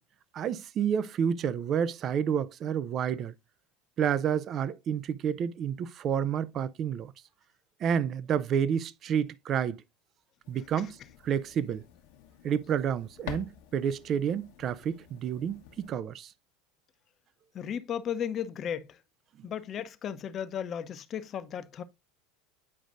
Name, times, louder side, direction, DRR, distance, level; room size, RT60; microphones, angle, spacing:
voice 1, 0.3-3.3 4.0-7.1 7.8-9.8 10.5-11.0 11.2-11.8 12.4-16.3, right 8 dB, 45° right, 0.5 m, -29 dB
sound 1, 10.4-15.9, left 10 dB, 65° left, 1.2 m, -48 dB
voice 2, 17.5-19.0 19.4-21.8, left 8 dB, 40° left, 0.8 m, -35 dB
8.6 x 5.0 x 2.5 m
hypercardioid pair, 80°, 0 cm